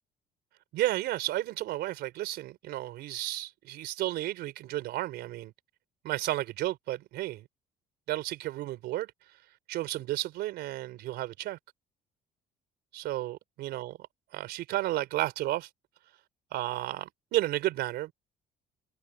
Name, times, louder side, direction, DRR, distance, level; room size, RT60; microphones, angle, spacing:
voice 1, 0.7-5.5 6.0-7.5 8.1-9.1 9.7-11.6 12.9-13.9 14.3-15.7 16.5-18.1, right 15 dB, 80° right, 3.7 m, -32 dB
cardioid pair, 110°, 17 cm